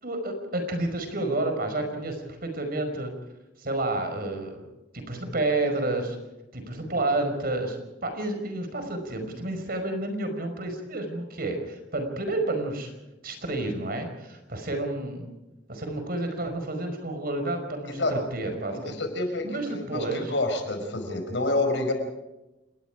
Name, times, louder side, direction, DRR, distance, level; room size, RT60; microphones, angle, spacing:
voice 1, 0.0-3.1 3.6-4.6 4.9-6.2 6.5-12.9 13.2-15.3 15.7-19.0 19.4-20.3, right 2 dB, 55° right, 6 dB, 5.2 m, -30 dB
voice 2, 18.7-21.9, left 2 dB, 85° left, 5 dB, 5.4 m, -28 dB
28.5 x 20.0 x 4.9 m, 1.0 s
head